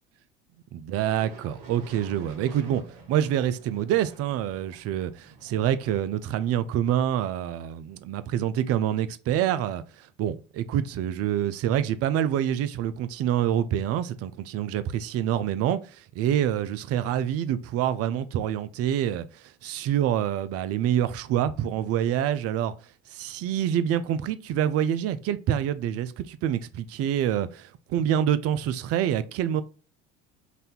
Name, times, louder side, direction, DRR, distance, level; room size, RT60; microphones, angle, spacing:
voice 1, 0.7-2.8 3.1-22.7 23.1-29.6, right 10 dB, 50° right, 0.6 m, -26 dB
sound 1, 1.1-7.2, right 4 dB, 80° right, 1.4 m, -50 dB
4.1 x 2.7 x 3.6 m
hypercardioid pair, 80°, 30 cm